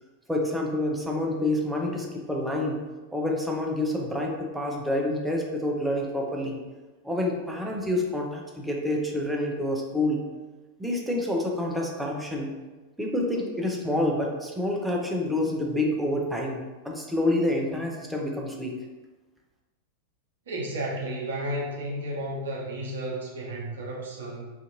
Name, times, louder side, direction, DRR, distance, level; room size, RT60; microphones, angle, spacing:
voice 1, 0.3-2.8 3.1-6.6 7.0-10.2 10.8-12.5 13.0-18.8, left 1 dB, 5° right, -1 dB, 0.5 m, -28 dB
voice 2, 20.5-24.5, right 1 dB, 65° right, -3 dB, 0.7 m, -32 dB
2.5 x 2.5 x 2.6 m, 1.2 s
figure-of-eight pair, 90°, 0 cm